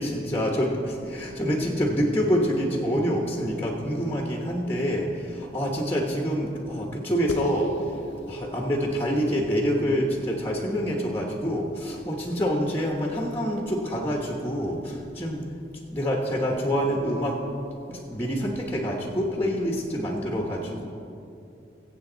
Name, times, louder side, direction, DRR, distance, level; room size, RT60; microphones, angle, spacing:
voice 1, 0.0-7.7 8.3-15.4 15.9-17.4 17.9-20.8, equal, 10° left, 0 dB, 1.2 m, -26 dB
sound 1, 7.3-12.1, left 1 dB, 80° left, 0.7 m, -38 dB
22.0 x 8.0 x 4.0 m, 2.7 s
head